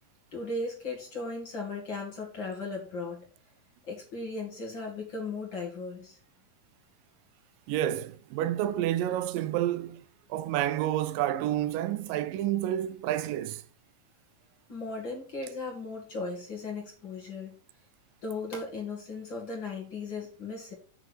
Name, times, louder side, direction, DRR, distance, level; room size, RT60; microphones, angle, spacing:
voice 1, 0.3-3.2 3.9-6.2 14.7-17.6 18.2-20.7, left 3 dB, 40° left, 2.3 m, -37 dB
voice 2, 7.7-13.6, right 12 dB, 85° right, 2.3 m, -29 dB
8.0 x 6.2 x 4.5 m
omnidirectional pair, 3.9 m